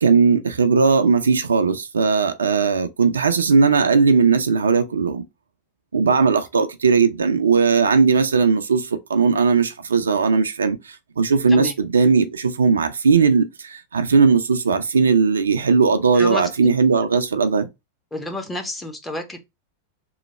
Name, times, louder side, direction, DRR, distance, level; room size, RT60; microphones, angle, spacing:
voice 1, 0.0-5.2 5.9-10.8 11.2-17.7, right 5 dB, 70° right, 0.4 m, -18 dB
voice 2, 16.1-16.5 18.1-19.4, left 1 dB, 10° left, 0.8 m, -29 dB
3.1 x 2.2 x 4.2 m
figure-of-eight pair, 90°, 0 cm